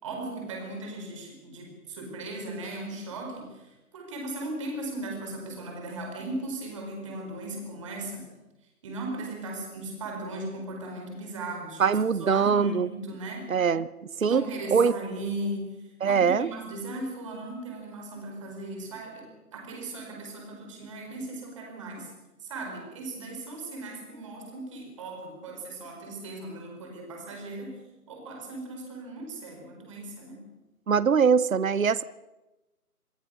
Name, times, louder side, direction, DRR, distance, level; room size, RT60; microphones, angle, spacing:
voice 1, 0.0-8.3 8.8-13.6 14.2-22.1 22.4-30.4, right 2 dB, 20° right, 2 dB, 4.6 m, -37 dB
voice 2, 11.8-12.9 13.5-13.9 14.2-14.4 14.7-14.9 16.0-16.5 30.9-32.0, right 6 dB, 60° right, 18 dB, 0.9 m, -22 dB
26.5 x 20.0 x 6.3 m, 1.0 s
figure-of-eight pair, 160°, 46 cm